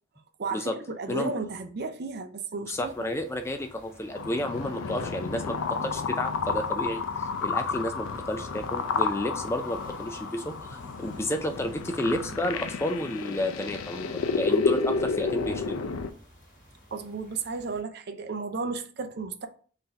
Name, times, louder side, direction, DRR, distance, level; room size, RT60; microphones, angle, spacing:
voice 1, 0.4-2.9 16.9-19.5, right 4 dB, 50° right, 0.5 m, -33 dB
sound 1, 2.7-17.8, equal, 40° left, 1.3 m, -50 dB
voice 2, 2.7-15.8, left 1 dB, 15° left, 0.3 m, -31 dB
sound 2, 4.2-16.1, left 4 dB, 80° left, 0.4 m, -31 dB
3.8 x 2.7 x 4.5 m
head